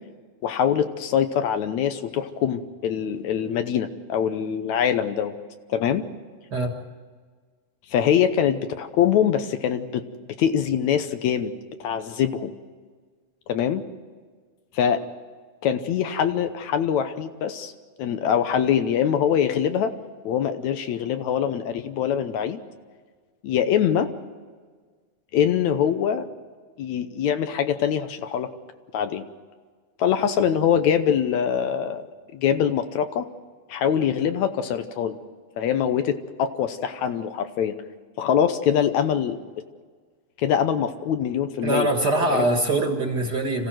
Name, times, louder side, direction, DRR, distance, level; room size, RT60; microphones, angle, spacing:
voice 1, 0.4-5.3 5.7-6.1 7.9-10.0 10.4-11.5 11.8-12.5 13.5-13.8 14.7-15.0 15.6-17.7 18.0-19.9 20.3-22.6 23.4-24.1 25.3-26.3 26.8-28.5 28.9-29.3 30.0-32.1 32.3-33.3 33.7-35.2 35.6-37.8 38.2-39.4 40.4-41.9 42.3-42.5, left 8 dB, 75° left, 9 dB, 2.2 m, -23 dB
voice 2, 41.6-43.7, right 2 dB, 40° right, 4 dB, 2.0 m, -23 dB
26.5 x 16.0 x 7.8 m, 1.5 s
omnidirectional pair, 3.5 m